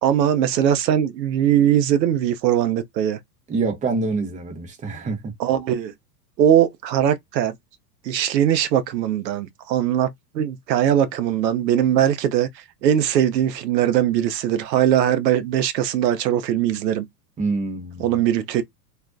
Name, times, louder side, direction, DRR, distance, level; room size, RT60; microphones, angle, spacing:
voice 1, 0.0-3.2 5.4-5.9 6.4-7.6 8.0-12.5 12.8-17.1 18.0-18.6, right 10 dB, 85° right, 0.6 m, -20 dB
voice 2, 3.5-5.2 17.4-18.2, right 3 dB, 15° right, 0.6 m, -26 dB
2.4 x 2.1 x 2.4 m
hypercardioid pair, 110°, 49 cm